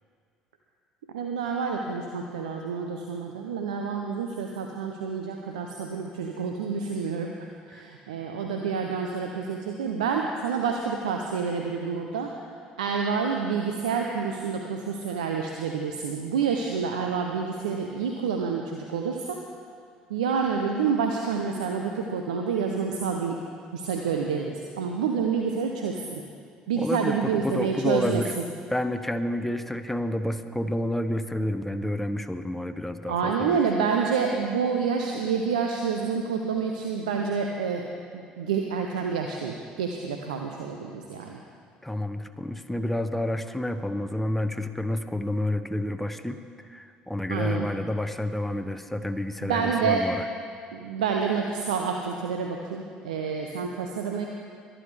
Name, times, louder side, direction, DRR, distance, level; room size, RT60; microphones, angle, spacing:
voice 1, 1.1-7.3 7.7-12.3 12.8-19.4 20.1-23.4 23.7-26.2 26.7-28.2 33.1-37.9 38.1-41.4 47.3-47.7 49.4-50.1 50.7-54.3, right 6 dB, 80° right, 2 dB, 0.7 m, -28 dB
voice 2, 26.8-28.3 28.7-33.6 41.8-46.4 46.7-50.2, left 1 dB, 5° left, 8 dB, 0.7 m, -29 dB
23.0 x 9.9 x 3.4 m, 2.2 s
hypercardioid pair, 55°, 4 cm